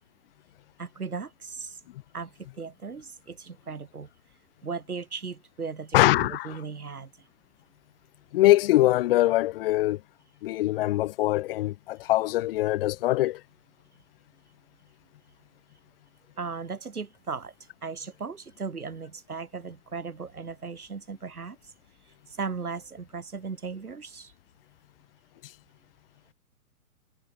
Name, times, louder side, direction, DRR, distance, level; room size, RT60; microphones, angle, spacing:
voice 1, 0.8-1.8 2.1-4.1 4.6-7.1 16.4-17.5 17.8-21.6 22.3-24.3, right 5 dB, 80° right, 3.1 m, -37 dB
voice 2, 5.9-6.6 8.3-10.0 10.4-13.4, left 16 dB, 40° left, 2.0 m, -23 dB
figure-of-eight pair, 125°, 44 cm